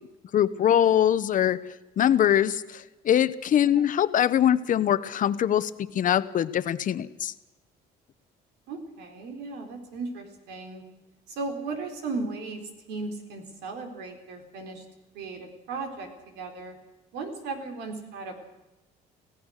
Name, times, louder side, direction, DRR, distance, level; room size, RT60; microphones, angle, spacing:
voice 1, 0.3-1.6 2.0-7.3, left 10 dB, 50° left, 14 dB, 1.0 m, -23 dB
voice 2, 8.7-10.8 11.3-14.8 15.1-16.7 17.1-18.5, right 3 dB, 85° right, 4 dB, 4.3 m, -36 dB
26.0 x 16.5 x 6.6 m, 1.0 s
cardioid pair, 110°, 17 cm